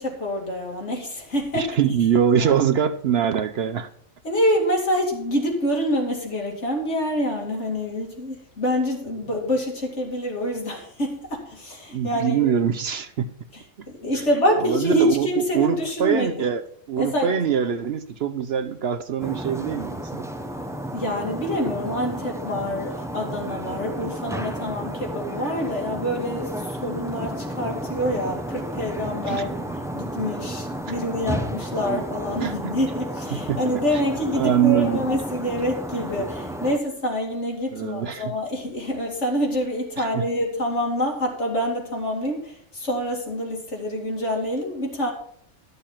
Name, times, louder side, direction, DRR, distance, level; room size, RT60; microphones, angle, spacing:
voice 1, 0.0-1.8 2.4-2.5 4.2-12.5 13.5-16.5 17.0-17.4 20.9-29.6 29.9-45.1, equal, 65° left, 0 dB, 2.8 m, -26 dB
voice 2, 1.5-3.9 11.9-13.4 14.1-14.2 14.6-16.6 16.9-20.2 29.3-29.4 30.9-31.0 32.4-32.8 33.3-33.6 34.3-35.0 37.7-38.3 40.0-40.2, right 8 dB, 60° right, 11 dB, 0.8 m, -23 dB
sound 1, 19.2-36.8, right 1 dB, 5° right, 0.3 m, -32 dB
12.0 x 6.8 x 5.8 m, 0.63 s
omnidirectional pair, 1.3 m